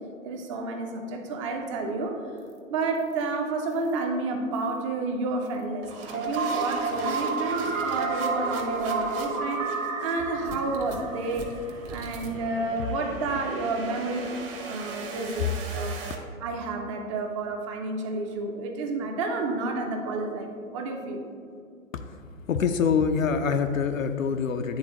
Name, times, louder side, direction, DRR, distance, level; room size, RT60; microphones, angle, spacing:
voice 1, 0.2-2.2 2.7-9.7 10.0-11.5 11.9-21.2, right 3 dB, 25° right, 4 dB, 0.5 m, -30 dB
sound 1, 2.4-2.6 2.9-3.2 3.7-4.0 4.5-4.8 5.4-16.1, right 3 dB, 45° right, 1.1 m, -41 dB
sound 2, 6.1-12.0, right 4 dB, 70° right, 1.5 m, -30 dB
voice 2, 22.5-24.8, left 6 dB, 75° left, 6 dB, 0.5 m, -25 dB
10.5 x 3.6 x 2.9 m, 2.5 s
figure-of-eight pair, 115°, 41 cm